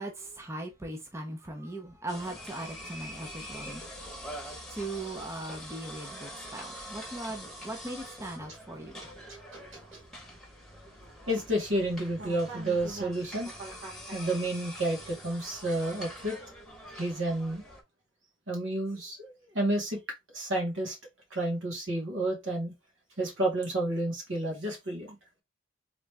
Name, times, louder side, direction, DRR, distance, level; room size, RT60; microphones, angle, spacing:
voice 1, 0.0-3.8 4.2-9.0, right 2 dB, 15° right, 0.7 m, -39 dB
sound 1, 2.1-17.8, equal, ahead, 1.2 m, -45 dB
voice 2, 9.0-9.4 9.9-10.0 11.3-16.4 17.0-17.6 18.5-20.0 20.3-21.0 21.3-22.7 23.2-25.2, right 1 dB, 75° right, 2.2 m, -31 dB
3.9 x 3.3 x 3.4 m
head